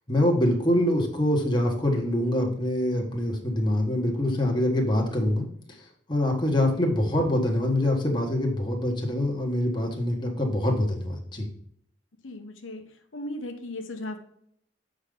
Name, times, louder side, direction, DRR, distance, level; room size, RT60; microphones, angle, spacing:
voice 1, 0.1-5.4 6.1-11.5, left 1 dB, 25° left, 0 dB, 1.4 m, -24 dB
voice 2, 12.2-12.8 13.1-14.2, left 1 dB, 80° left, 4 dB, 1.0 m, -36 dB
7.5 x 5.0 x 3.8 m, 0.69 s
head